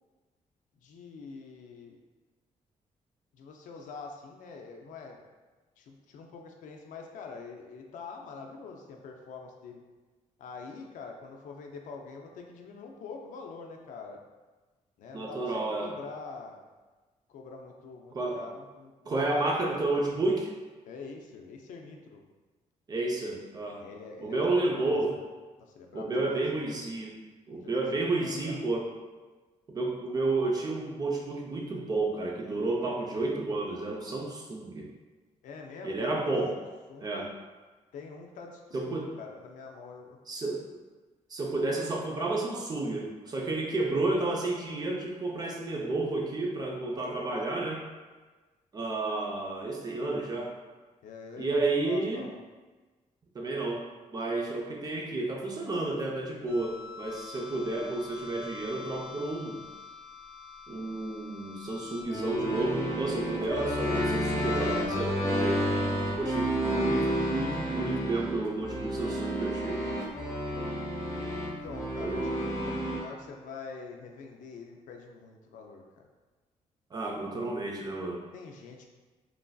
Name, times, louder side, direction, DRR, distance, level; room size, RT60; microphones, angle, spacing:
voice 1, 0.8-2.0 3.3-5.2 5.8-9.8 10.4-14.2 15.0-16.6 17.3-19.6 20.9-22.2 23.8-25.0 25.6-26.4 27.5-28.6 35.4-37.3 37.9-40.2 51.0-52.4 71.1-76.1 78.3-78.9, left 4 dB, 75° left, 2 dB, 0.4 m, -45 dB
voice 2, 15.1-15.9 18.1-18.4 19.1-20.5 22.9-23.8 24.2-25.1 25.9-27.1 27.5-28.9 29.7-34.9 35.8-36.6 37.0-37.3 38.7-39.2 40.3-40.8 41.3-47.8 48.7-50.6 51.4-52.3 53.3-59.6 60.7-65.7 66.2-69.8 72.0-72.2 76.9-78.2, right 2 dB, 30° right, 0 dB, 0.4 m, -31 dB
sound 1, 56.5-73.0, equal, 20° left, 0.9 m, -32 dB
3.1 x 2.5 x 2.2 m, 1.3 s
cardioid pair, 135°, 13 cm